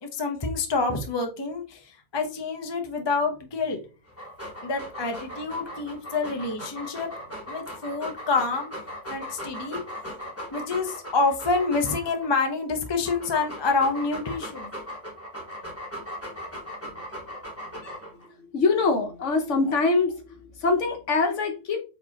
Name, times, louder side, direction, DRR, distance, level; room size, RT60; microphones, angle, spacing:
voice 1, 0.0-3.8 4.6-7.1 7.5-8.7 9.1-9.8 10.5-14.7, left 4 dB, 30° left, 4 dB, 0.5 m, -27 dB
Dog, 4.1-12.3 12.9-18.3, equal, 10° left, 1.2 m, -38 dB
voice 2, 18.4-21.8, left 3 dB, 55° left, 5 dB, 1.1 m, -24 dB
4.6 x 3.8 x 2.8 m, 0.33 s
omnidirectional pair, 1.6 m